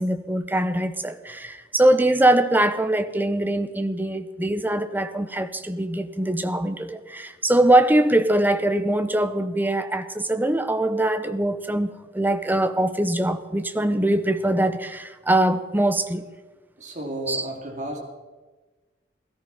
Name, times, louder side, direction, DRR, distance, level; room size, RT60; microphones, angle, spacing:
voice 1, 0.0-16.2 17.3-17.5, right 1 dB, 10° right, 0.8 m, -22 dB
voice 2, 16.8-18.0, right 1 dB, 40° right, 3.2 m, -32 dB
17.5 x 13.5 x 5.6 m
head